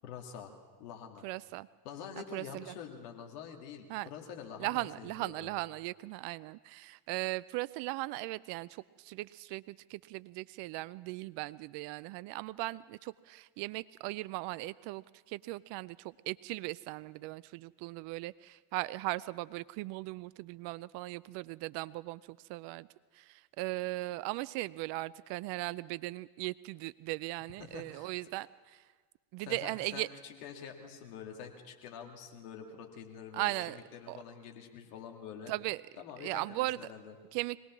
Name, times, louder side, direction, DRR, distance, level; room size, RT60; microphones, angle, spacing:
voice 1, 0.0-0.5 0.8-1.3 1.8-5.6 27.6-28.1 29.4-35.5 36.0-37.1, left 7 dB, 80° left, 3 dB, 2.3 m, -46 dB
voice 2, 1.2-1.7 2.3-2.7 3.9-4.1 4.6-22.9 23.1-28.8 29.3-30.1 33.3-33.8 34.1-34.2 35.5-35.8 36.2-36.8 37.3-37.6, right 19 dB, 60° right, 19 dB, 0.6 m, -38 dB
23.5 x 18.0 x 6.1 m, 1.5 s
hypercardioid pair, 65°, 47 cm